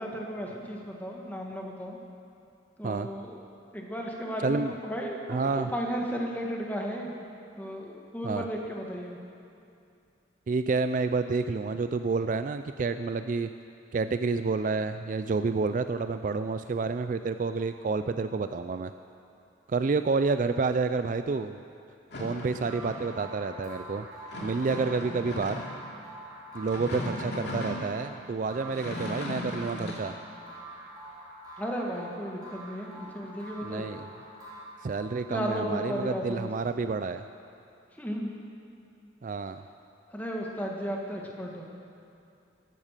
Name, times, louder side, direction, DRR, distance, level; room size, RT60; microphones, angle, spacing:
voice 1, 0.0-2.0 2.8-3.4 3.7-7.1 7.6-9.2 31.6-33.8 35.3-36.5 38.0-38.3 40.1-41.6, equal, 10° left, -1 dB, 1.6 m, -34 dB
voice 2, 4.4-4.7 5.3-5.7 8.2-8.5 10.5-13.5 13.9-18.9 19.7-21.6 22.2-24.1 24.4-25.6 26.5-30.1 33.6-34.1 34.8-37.2 39.2-39.7, right 4 dB, 40° right, 10 dB, 0.3 m, -29 dB
sound 1, 22.1-23.2 24.3-25.8 26.5-27.8 28.5-30.0, left 1 dB, 60° left, 2.8 m, -37 dB
sound 2, 22.7-35.2, right 1 dB, 20° right, 4.2 m, -46 dB
14.5 x 12.5 x 6.6 m, 2.6 s
head